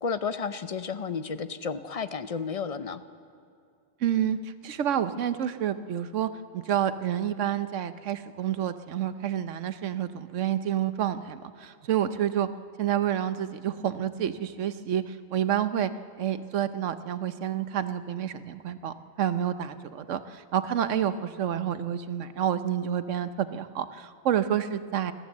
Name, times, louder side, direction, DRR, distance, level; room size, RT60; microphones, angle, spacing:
voice 1, 0.0-3.0, left 5 dB, 40° left, 11 dB, 0.5 m, -32 dB
voice 2, 4.0-12.5 12.8-15.9 16.2-25.1, right 10 dB, 70° right, 11 dB, 1.1 m, -29 dB
29.5 x 12.5 x 7.3 m, 2.4 s
omnidirectional pair, 1.4 m